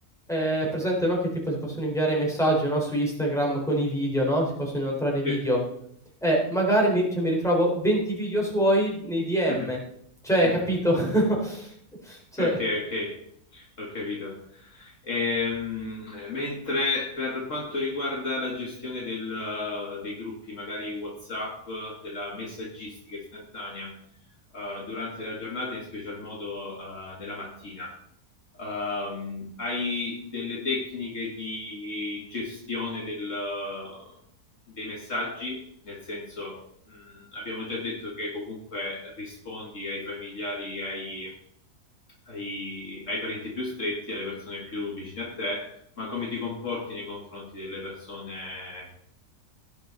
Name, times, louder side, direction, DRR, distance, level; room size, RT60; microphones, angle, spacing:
voice 1, 0.3-1.2 1.5-5.6 6.2-9.8 10.2-11.7 12.1-12.6, right 1 dB, ahead, -3 dB, 4.1 m, -24 dB
voice 2, 12.4-13.2 13.5-23.9 24.5-28.0 28.5-34.2 34.8-41.3 42.3-48.9, left 3 dB, 55° left, -1 dB, 2.1 m, -33 dB
17.0 x 6.8 x 3.9 m, 0.70 s
omnidirectional pair, 1.6 m